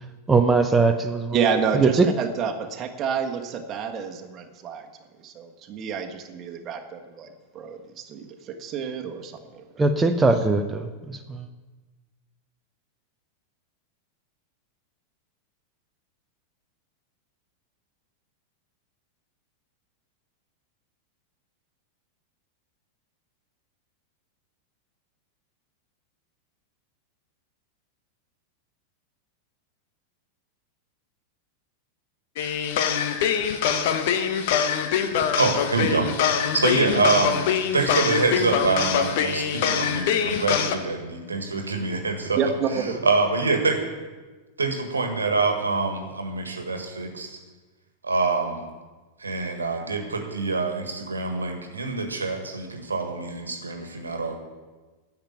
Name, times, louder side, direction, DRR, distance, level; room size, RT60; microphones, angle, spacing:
voice 1, 0.3-1.4 1.7-2.1 9.8-11.5, right 3 dB, 10° right, 5 dB, 0.8 m, -21 dB
voice 2, 1.3-4.9 5.2-9.6 42.3-42.9, right 6 dB, 30° right, 3 dB, 1.4 m, -29 dB
sound 1, 32.4-40.7, left 8 dB, 50° left, 1.0 m, -24 dB
voice 3, 35.4-36.1 36.5-37.4 37.7-42.4 42.7-43.8 44.6-47.4 48.0-48.6 49.2-54.4, right 3 dB, 75° right, 5 dB, 1.6 m, -25 dB
10.5 x 7.4 x 9.2 m, 1.3 s
figure-of-eight pair, 90°, 0 cm